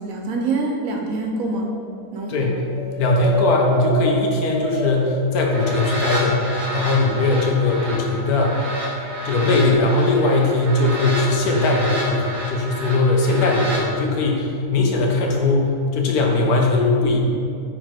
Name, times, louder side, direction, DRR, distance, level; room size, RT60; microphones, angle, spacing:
voice 1, 0.0-1.7 2.1-2.6, right 3 dB, 65° right, 1 dB, 1.0 m, -25 dB
sound 1, 1.3-1.9 2.3-6.5 7.0-8.3 9.6-9.8, equal, 30° left, 0.5 m, -29 dB
voice 2, 2.3-2.6 3.0-8.7 9.2-17.2, left 2 dB, 70° left, 0 dB, 1.3 m, -19 dB
sound 2, 5.3-13.8, equal, 45° right, 1.5 m, -29 dB
5.8 x 4.7 x 4.4 m, 2.4 s
omnidirectional pair, 1.7 m